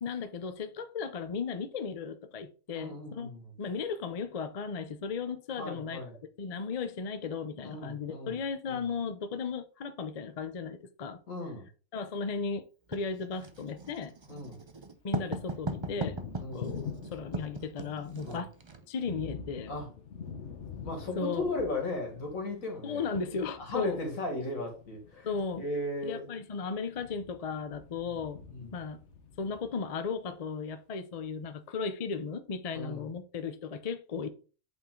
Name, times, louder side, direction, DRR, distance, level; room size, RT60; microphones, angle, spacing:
voice 1, 0.0-6.0 6.4-11.2 11.9-12.6 12.9-14.1 15.0-16.2 16.5-18.5 18.9-19.7 21.2-21.5 22.8-24.0 25.3-25.6 26.0-29.0 29.4-34.3, left 5 dB, 45° left, 0.5 m, -36 dB
voice 2, 2.7-3.5 5.6-6.2 7.6-8.4 8.7-8.9 11.3-11.7 14.3-14.6 16.4-16.7 18.2-18.4 19.7-19.9 20.8-23.1 23.6-26.3 27.9-28.1 28.5-28.8 32.7-33.1, left 2 dB, 80° left, 2.2 m, -36 dB
Writing, 12.9-18.9, right 3 dB, 30° right, 0.5 m, -39 dB
Thunder, 13.4-14.6 14.9-30.1, left 6 dB, 60° left, 1.2 m, -46 dB
8.5 x 3.7 x 3.7 m
omnidirectional pair, 1.4 m